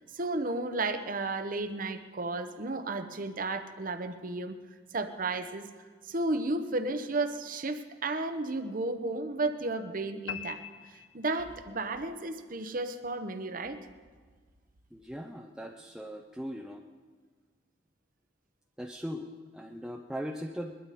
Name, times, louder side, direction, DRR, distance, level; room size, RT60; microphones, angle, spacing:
voice 1, 0.1-4.6 4.9-5.7 6.1-10.6 10.9-13.8, right 2 dB, 50° right, 8 dB, 1.0 m, -33 dB
sound 1, 10.3-11.8, left 9 dB, 75° left, 0.4 m, -42 dB
voice 2, 14.9-16.8 18.8-20.8, equal, 5° right, 1 dB, 0.6 m, -39 dB
21.5 x 12.5 x 4.2 m, 1.5 s
head